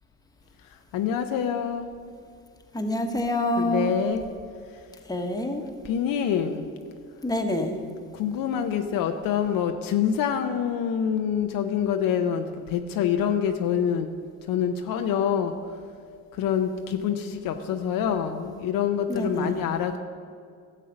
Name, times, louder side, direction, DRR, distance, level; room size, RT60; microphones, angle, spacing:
voice 1, 0.7-1.9 3.6-4.2 5.8-6.7 8.1-14.1 14.5-15.8 16.3-20.0, left 8 dB, 60° left, 6 dB, 0.8 m, -26 dB
voice 2, 2.7-3.9 5.1-5.6 7.2-7.8 19.1-19.6, left 1 dB, 10° left, 3 dB, 1.3 m, -26 dB
12.0 x 7.5 x 5.2 m, 2.2 s
supercardioid pair, 80°, 38 cm